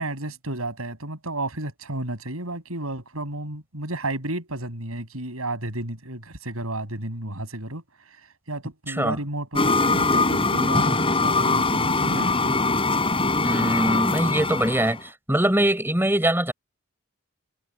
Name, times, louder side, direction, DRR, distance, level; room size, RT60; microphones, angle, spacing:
voice 1, 0.0-7.8 8.5-12.6, right 2 dB, 80° right, 7.5 m, -32 dB
sound 1, 9.6-15.0, left 3 dB, 25° left, 3.9 m, -22 dB
voice 2, 13.4-16.5, right 1 dB, 10° right, 7.2 m, -23 dB
head